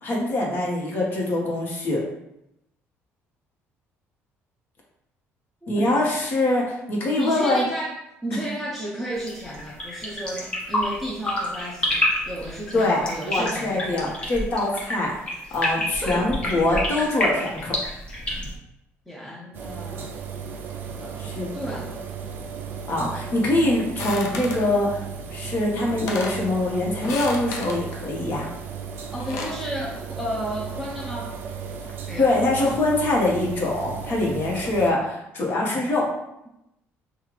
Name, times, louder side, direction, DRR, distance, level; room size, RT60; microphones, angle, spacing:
voice 1, 0.0-2.0 5.7-7.6 12.7-15.1 15.5-17.8 21.2-21.5 22.9-25.0 25.3-28.5 32.2-36.1, left 2 dB, 40° left, -2 dB, 1.1 m, -23 dB
voice 2, 5.6-6.1 7.2-13.9 15.5-16.3 16.7-16.8 19.1-20.1 21.0-22.0 29.1-31.4 32.1-32.3 32.6-32.8, equal, ahead, -4 dB, 0.5 m, -33 dB
sound 1, 9.1-18.5, left 1 dB, 20° left, 1.0 m, -28 dB
sound 2, 19.5-34.9, right 6 dB, 45° right, 0.4 m, -35 dB
sound 3, 24.0-24.7 25.6-25.7 25.9-26.4 27.0-27.8 29.0-29.6, left 3 dB, 90° left, 0.7 m, -33 dB
5.5 x 2.4 x 3.2 m, 0.84 s
cardioid pair, 165°, 5 cm